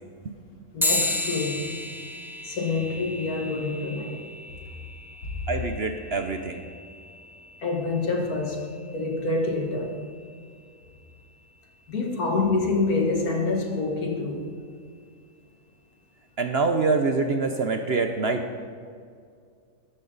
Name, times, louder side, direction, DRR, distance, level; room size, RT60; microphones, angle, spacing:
voice 1, 0.7-1.7 2.5-4.2 5.3-5.4 7.6-8.6 8.9-10.0 11.9-14.5, left 3 dB, 70° left, 1 dB, 2.3 m, -26 dB
sound 1, 0.8-10.6, left 2 dB, ahead, 0.7 m, -34 dB
voice 2, 5.5-6.6 16.4-18.4, right 4 dB, 50° right, 6 dB, 0.9 m, -25 dB
14.5 x 12.0 x 4.0 m, 2.2 s
omnidirectional pair, 1.6 m